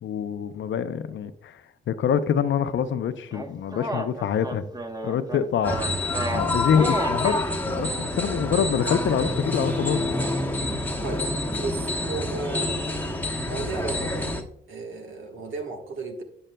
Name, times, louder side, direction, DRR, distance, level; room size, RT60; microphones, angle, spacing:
voice 1, 0.0-1.6 1.9-4.6 5.0-5.8 6.3-10.1, left 8 dB, 70° left, 12 dB, 0.6 m, -25 dB
sound 1, 3.3-7.4, right 1 dB, 20° right, 1.0 m, -32 dB
sound 2, 5.6-14.4, left 1 dB, 10° left, 1.0 m, -27 dB
voice 2, 11.6-12.8 13.4-16.2, right 3 dB, 75° right, 3 dB, 1.3 m, -34 dB
8.8 x 7.5 x 2.2 m, 0.71 s
cardioid pair, 60°, 20 cm